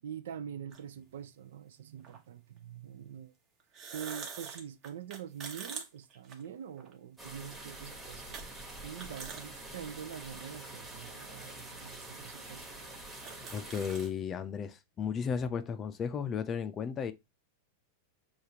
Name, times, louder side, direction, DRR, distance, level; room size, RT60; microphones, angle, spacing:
voice 1, 0.0-3.3 3.9-8.4 8.8-12.6, right 8 dB, 80° right, 0.5 m, -45 dB
sound 1, 0.7-0.8 2.0-2.2 3.6-6.9 7.3-7.5 8.3-8.5 8.8-9.5 9.9-10.0 10.9-11.0 11.8-11.9 12.1-12.2 12.7-12.8 13.0-14.1, right 6 dB, 30° right, 0.9 m, -44 dB
sound 2, 7.2-14.1, right 2 dB, 10° right, 1.0 m, -46 dB
voice 2, 13.5-17.1, left 7 dB, 20° left, 0.4 m, -34 dB
6.5 x 2.4 x 2.8 m
supercardioid pair, 155°, 0 cm